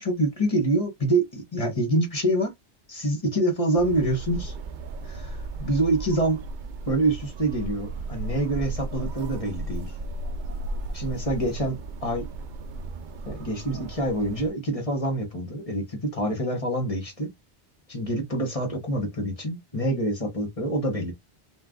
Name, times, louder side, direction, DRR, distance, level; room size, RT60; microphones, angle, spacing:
voice 1, 0.0-2.5 2.9-4.5 5.0-6.4 6.9-9.9 10.9-12.3 13.3-17.3 17.9-21.1, right 1 dB, 30° left, 1.3 m, -26 dB
sound 1, 3.8-14.5, right 2 dB, 60° right, 0.6 m, -35 dB
4.4 x 2.3 x 3.8 m
omnidirectional pair, 1.1 m